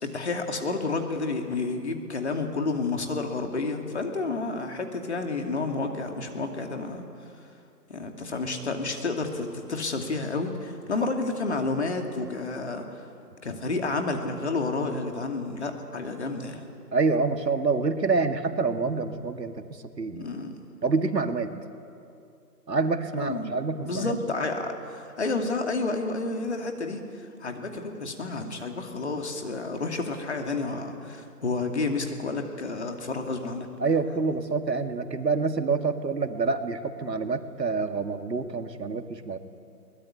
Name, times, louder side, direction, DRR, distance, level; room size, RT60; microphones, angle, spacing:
voice 1, 0.0-7.0 7.9-13.1 13.4-16.6 20.1-20.7 23.2-23.5 23.8-33.7, left 3 dB, 40° left, 4 dB, 2.6 m, -30 dB
voice 2, 16.9-19.6 20.0-20.3 20.8-21.5 22.7-24.1 33.8-39.4, right 4 dB, 80° right, 7 dB, 2.1 m, -27 dB
22.5 x 20.5 x 9.9 m, 2.5 s
hypercardioid pair, 170°, 49 cm